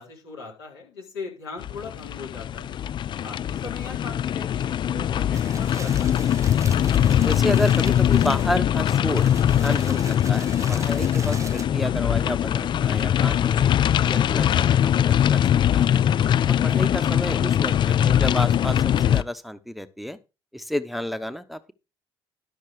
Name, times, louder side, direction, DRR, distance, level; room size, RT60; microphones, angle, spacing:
voice 1, 0.0-2.8 3.2-6.6 16.7-17.2, left 4 dB, 75° left, -3 dB, 4.1 m, -39 dB
sound 1, 1.6-19.2, left 10 dB, 40° left, 0.5 m, -21 dB
sound 2, 5.3-11.7, right 4 dB, 25° right, 1.0 m, -42 dB
voice 2, 7.2-9.2 9.6-15.4 15.7-15.9 16.5-20.2 20.5-21.7, equal, ahead, 11 dB, 0.9 m, -31 dB
12.0 x 6.3 x 4.8 m, 0.29 s
figure-of-eight pair, 50°, 13 cm